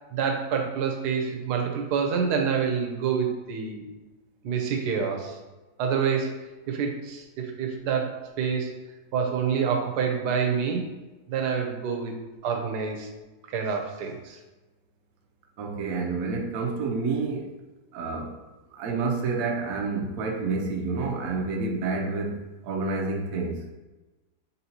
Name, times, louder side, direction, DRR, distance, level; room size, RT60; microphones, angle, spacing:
voice 1, 0.1-3.8 4.4-5.4 5.8-8.7 9.1-10.9 11.3-12.2 12.4-13.1 13.5-14.4, right 6 dB, 90° right, 2 dB, 1.2 m, -27 dB
voice 2, 15.6-17.4 17.9-18.3 18.8-23.6, right 4 dB, 65° right, 1 dB, 1.0 m, -29 dB
4.1 x 3.7 x 2.8 m, 1.1 s
omnidirectional pair, 1.7 m